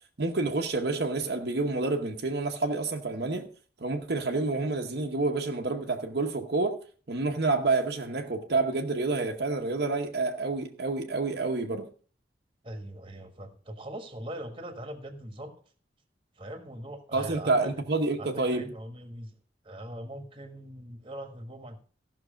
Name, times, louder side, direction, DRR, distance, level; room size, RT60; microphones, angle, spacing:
voice 1, 0.2-3.5 3.8-6.8 7.1-11.9 17.1-18.7, right 3 dB, 60° right, 0.9 m, -28 dB
voice 2, 12.6-15.6 16.4-17.7 18.2-19.3 19.6-21.8, right 1 dB, 30° right, 1.4 m, -41 dB
14.5 x 6.1 x 5.1 m
head